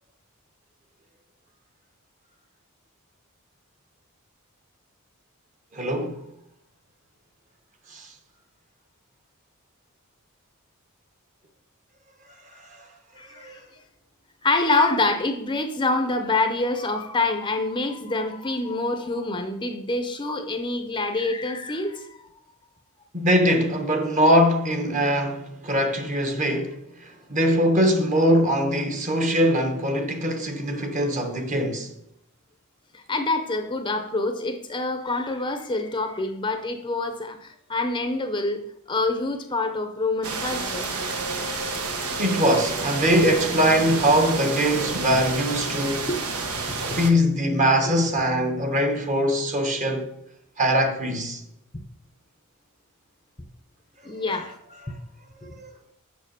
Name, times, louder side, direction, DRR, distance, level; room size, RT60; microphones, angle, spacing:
voice 1, 5.7-6.3 7.9-8.1 13.4-13.5 23.1-31.9 42.2-46.1 46.8-50.1 50.6-51.4 54.3-54.4 55.6-55.7, equal, 35° right, 1.1 m, -22 dB
voice 2, 13.2-13.6 14.4-22.1 32.9-38.6 38.9-40.9 46.1-46.2 54.0-54.5 54.9-55.0 55.4-55.5, left 2 dB, 20° left, 0.6 m, -26 dB
sound 1, 40.2-47.1, right 3 dB, 85° right, 1.2 m, -29 dB
6.6 x 5.8 x 6.7 m
head